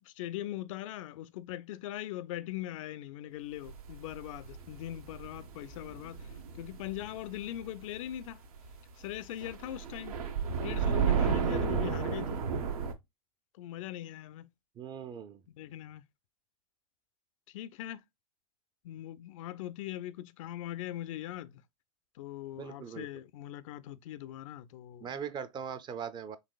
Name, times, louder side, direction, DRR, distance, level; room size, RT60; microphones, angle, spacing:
voice 1, 0.1-8.4 9.0-10.2 10.6-12.4 13.6-14.5 15.5-16.0 17.5-18.0 18.8-21.5 22.2-25.1, left 13 dB, 60° left, 0.4 m, -41 dB
sound 1, 3.7-8.3 8.5-8.7 9.1-12.9, right 6 dB, 75° right, 0.8 m, -32 dB
voice 2, 14.8-15.4 22.6-23.1 25.0-26.4, right 7 dB, 25° right, 0.4 m, -40 dB
3.9 x 2.9 x 2.3 m
hypercardioid pair, 105°, 19 cm